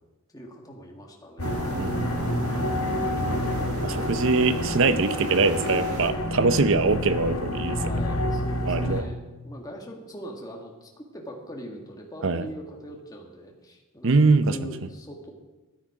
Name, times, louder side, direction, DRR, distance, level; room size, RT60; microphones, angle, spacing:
voice 1, 0.3-2.1 7.7-15.3, equal, 15° left, 0 dB, 1.8 m, -41 dB
sound 1, 1.4-9.0, left 1 dB, 70° left, 1.4 m, -28 dB
sound 2, 1.4-6.1, right 2 dB, 75° right, 1.6 m, -35 dB
voice 2, 1.7-2.4 3.8-7.8 8.7-9.0 12.2-12.4 14.0-14.6, right 3 dB, 60° right, 12 dB, 0.7 m, -23 dB
14.0 x 10.0 x 4.9 m, 1.1 s
head